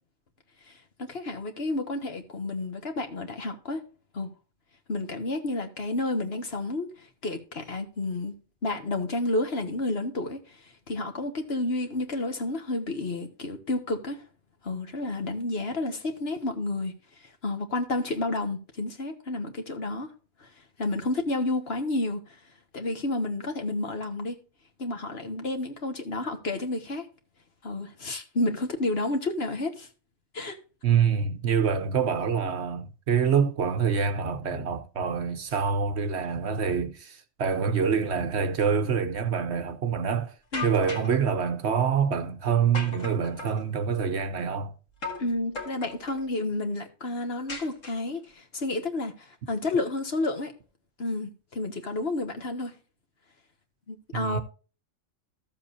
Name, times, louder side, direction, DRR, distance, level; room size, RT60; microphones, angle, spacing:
voice 1, 1.0-3.8 4.1-4.3 4.9-8.3 8.6-10.4 10.9-14.2 14.6-16.9 17.4-20.1 20.4-20.5 20.8-22.2 22.7-24.4 24.8-27.1 27.6-29.9 30.3-30.6 40.5-40.7 45.2-50.5 51.0-52.8 53.9-54.4, left 2 dB, 50° left, 1.6 m, -30 dB
voice 2, 30.8-40.3 40.6-44.7 54.1-54.4, right 6 dB, 60° right, 1.1 m, -26 dB
sound 1, 40.5-41.2 42.7-43.6 45.0-45.3 45.5-46.2 47.5-48.2, left 3 dB, 70° left, 2.4 m, -37 dB
14.0 x 7.4 x 2.6 m
omnidirectional pair, 1.4 m